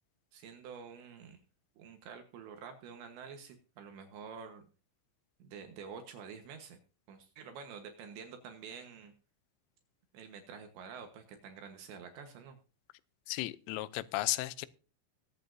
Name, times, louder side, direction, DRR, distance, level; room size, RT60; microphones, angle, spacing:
voice 1, 0.3-1.4 1.8-4.7 5.4-6.8 7.1-9.1 10.1-12.6, right 6 dB, 70° right, 3.3 m, -48 dB
voice 2, 13.3-14.7, left 18 dB, 85° left, 3.2 m, -34 dB
22.0 x 8.5 x 2.7 m
omnidirectional pair, 5.8 m